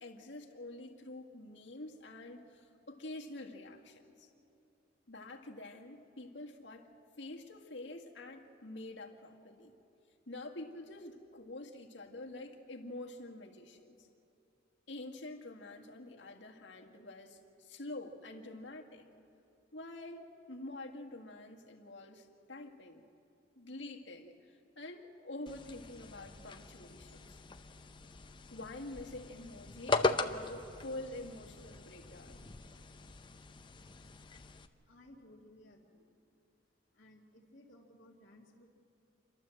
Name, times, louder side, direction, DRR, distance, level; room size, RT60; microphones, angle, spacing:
voice 1, 0.0-4.3 5.1-6.9 7.2-9.7 10.3-14.1 14.9-19.1 19.7-23.0 23.6-27.4 28.5-32.5, left 2 dB, 65° left, 1 dB, 1.8 m, -47 dB
sound 1, 25.5-34.7, left 3 dB, 25° left, 0.7 m, -39 dB
voice 2, 34.8-36.2 36.9-38.7, left 1 dB, 45° left, -9 dB, 2.2 m, -60 dB
29.0 x 12.0 x 7.7 m, 2.9 s
head